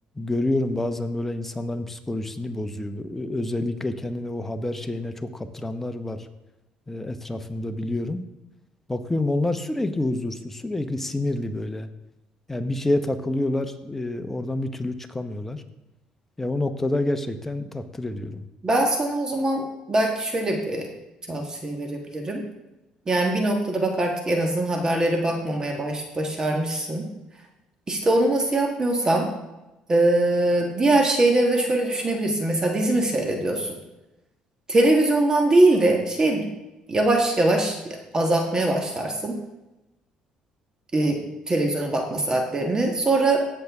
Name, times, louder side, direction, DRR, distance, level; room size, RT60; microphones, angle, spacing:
voice 1, 0.2-6.3 6.9-8.2 8.9-11.9 12.5-15.6 16.4-18.5, left 2 dB, 10° left, 8 dB, 0.9 m, -28 dB
voice 2, 18.6-20.9 21.3-22.4 23.1-27.0 27.9-29.3 29.9-33.7 34.7-36.5 36.9-37.8 38.1-39.4 40.9-41.2 41.5-43.4, right 2 dB, 25° right, 2 dB, 1.4 m, -22 dB
16.0 x 6.7 x 3.6 m, 0.99 s
cardioid pair, 110°, 3 cm